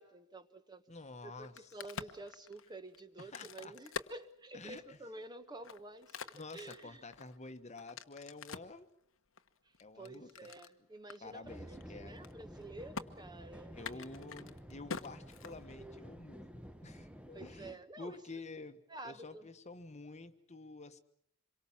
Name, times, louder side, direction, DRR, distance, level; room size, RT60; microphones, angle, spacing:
voice 1, 0.0-0.8 1.2-7.0 9.9-14.0 17.3-18.2 18.9-19.5, right 2 dB, 20° right, 1.4 m, -50 dB
voice 2, 0.9-1.7 3.2-3.7 4.5-5.0 6.3-8.9 9.8-10.5 11.2-12.2 13.7-21.0, left 3 dB, 35° left, 1.2 m, -50 dB
Crack, 1.4-5.0 5.5-8.8 9.4-10.7 11.1-11.2 11.5-11.8 12.1-12.6 12.9-13.1 13.7-16.0, left 5 dB, 85° left, 1.2 m, -46 dB
sound 1, 11.4-17.7, equal, 5° right, 1.2 m, -51 dB
26.5 x 23.0 x 7.3 m
head